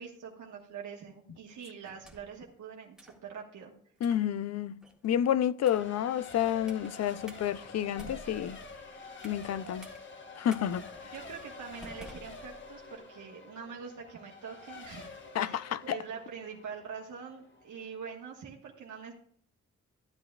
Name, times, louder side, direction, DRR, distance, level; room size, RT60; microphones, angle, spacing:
voice 1, 0.0-3.7 11.0-15.1 15.4-19.1, right 6 dB, 85° right, 1.3 m, -44 dB
sound 1, 1.8-2.4 3.0-3.2 4.0-4.3 4.8-5.1 5.6-6.0 6.7-6.9 7.3-7.4 7.8-9.5 9.8-10.0 10.5-10.6 11.1-11.3 11.8-12.9, right 1 dB, ahead, 1.6 m, -51 dB
voice 2, 4.0-8.6 9.2-9.9 10.4-10.9 15.3-16.0, left 10 dB, 60° left, 0.4 m, -30 dB
Race car auto racing / Accelerating revving vroom / Mechanisms, 5.6-18.1, left 4 dB, 40° left, 1.2 m, -48 dB
13.0 x 8.6 x 2.3 m
cardioid pair, 110°, 29 cm